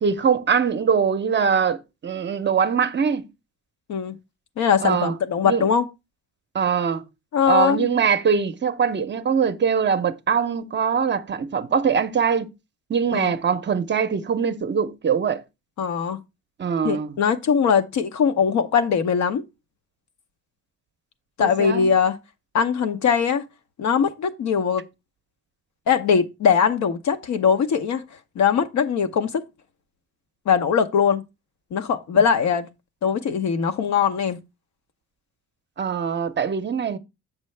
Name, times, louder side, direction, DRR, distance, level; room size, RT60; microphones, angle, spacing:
voice 1, 0.0-3.3 4.8-5.1 5.4-5.7 6.5-7.1 7.5-12.5 12.9-15.4 16.6-17.1 21.4-21.9 35.8-37.0, right 6 dB, 40° right, 0.6 m, -22 dB
voice 2, 4.6-5.9 7.3-7.9 13.1-13.3 15.8-16.2 16.8-19.4 21.4-22.2 22.5-23.4 23.8-24.8 25.9-28.0 28.4-29.4 30.5-31.2 31.7-32.7 33.0-34.4, left 7 dB, 70° left, 0.8 m, -21 dB
7.5 x 6.0 x 3.3 m
cardioid pair, 90°, 30 cm